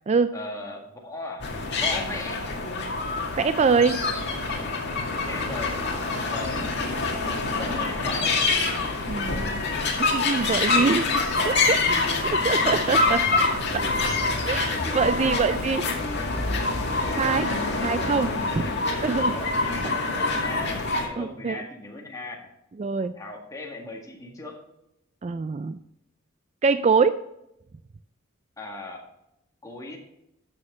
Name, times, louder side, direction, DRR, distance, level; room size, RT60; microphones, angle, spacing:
voice 1, 0.3-2.5 5.3-6.7 7.2-8.4 11.4-13.0 13.3-14.1 14.7-16.4 16.9-22.5 23.1-24.6 28.6-29.1 29.6-30.0, left 2 dB, 15° left, 0 dB, 1.8 m, -38 dB
sound 1, 1.4-21.1, left 3 dB, 55° left, 2.0 m, -26 dB
voice 2, 3.4-4.0 9.1-9.6 10.0-11.8 12.4-13.2 13.7-13.8 14.5-15.8 17.2-17.5 17.8-18.3 18.6-18.7 19.0-19.3 21.2-21.6 22.8-23.1 25.2-25.8 26.6-27.1, right 5 dB, 30° right, 11 dB, 0.3 m, -24 dB
12.5 x 6.5 x 3.7 m, 0.84 s
head